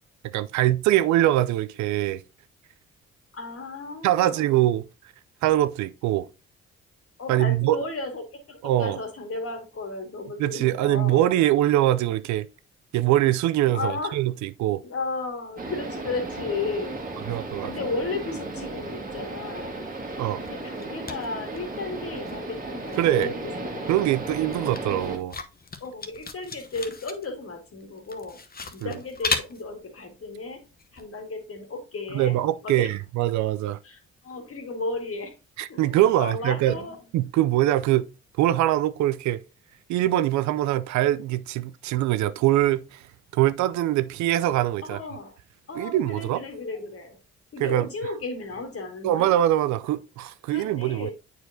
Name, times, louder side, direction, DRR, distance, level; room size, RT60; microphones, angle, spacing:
voice 1, 0.3-2.2 4.0-4.8 5.4-6.3 7.3-7.8 8.6-9.0 10.4-12.5 12.9-14.8 17.3-17.7 20.2-20.4 23.0-23.3 23.9-25.4 28.8-28.9 32.1-33.8 35.6-36.8 37.1-38.1 38.4-39.4 39.9-43.0 43.3-45.0 45.8-46.4 47.6-47.9 49.0-51.1, right 14 dB, 75° right, 0.4 m, -23 dB
voice 2, 3.3-4.5 7.2-11.3 13.7-14.2 14.8-17.0 17.6-19.7 20.4-23.8 25.8-28.4 28.7-30.6 30.9-32.4 32.6-32.9 33.8-35.3 35.7-37.0 44.8-45.3 45.7-47.2 47.5-49.3 50.5-51.1, left 3 dB, 50° left, 1.9 m, -34 dB
sound 1, 15.6-25.2, right 2 dB, 30° right, 1.6 m, -35 dB
sound 2, 20.4-22.0 22.2-31.0, left 4 dB, 30° left, 0.9 m, -36 dB
7.9 x 4.6 x 2.7 m
supercardioid pair, 55°, 29 cm